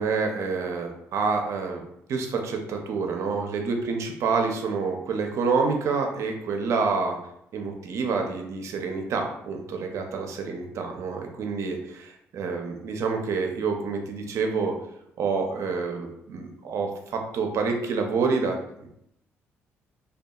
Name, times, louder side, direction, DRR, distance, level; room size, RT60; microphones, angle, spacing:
voice 1, 0.0-1.8 2.1-7.2 7.5-14.8 15.2-18.9, right 4 dB, 65° right, 3 dB, 0.5 m, -28 dB
2.7 x 2.2 x 2.3 m, 0.77 s
cardioid pair, 80°, 5 cm